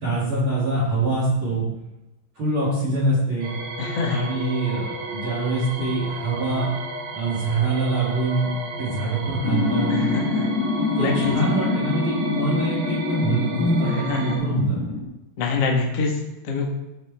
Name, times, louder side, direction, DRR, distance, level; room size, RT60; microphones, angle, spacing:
voice 1, 0.0-1.7 2.3-3.5 4.1-6.7 7.1-8.5 8.8-9.9 11.0-15.0, right 2 dB, 35° right, -7 dB, 2.8 m, -24 dB
sound 1, 3.4-14.4, right 2 dB, 80° right, 4.0 m, -33 dB
voice 2, 3.8-4.2 9.9-10.5 11.0-11.3 13.9-14.4 15.4-16.7, left 4 dB, 80° left, 0 dB, 1.4 m, -25 dB
sound 2, 9.4-15.0, left 4 dB, 65° left, 1.5 m, -26 dB
15.0 x 5.7 x 3.6 m, 0.96 s
omnidirectional pair, 5.4 m